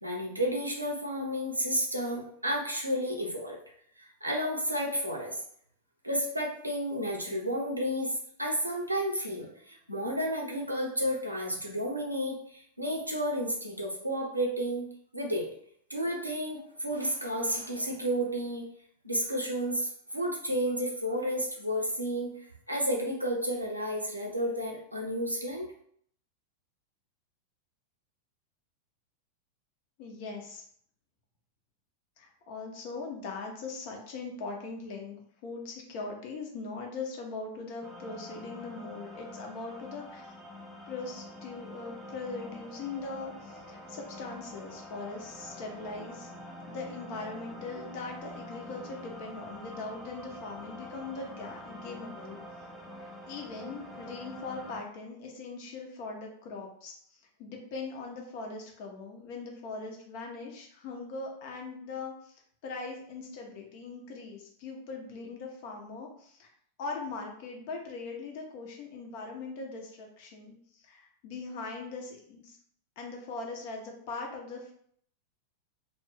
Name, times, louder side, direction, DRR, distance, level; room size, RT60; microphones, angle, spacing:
voice 1, 0.0-3.6 4.0-5.4 6.0-8.1 8.4-14.9 15.1-15.5 15.9-18.6 19.0-22.3 22.7-25.7, equal, 85° right, -1 dB, 0.6 m, -31 dB
voice 2, 30.0-30.6 32.2-40.3 40.9-46.3 46.7-52.4 53.0-56.9 57.4-66.5 66.8-72.6 73.0-74.7, left 3 dB, 45° left, 1 dB, 0.7 m, -40 dB
sound 1, 37.8-54.8, left 1 dB, ahead, 0.6 m, -46 dB
2.4 x 2.2 x 3.5 m, 0.63 s
figure-of-eight pair, 90°, 0 cm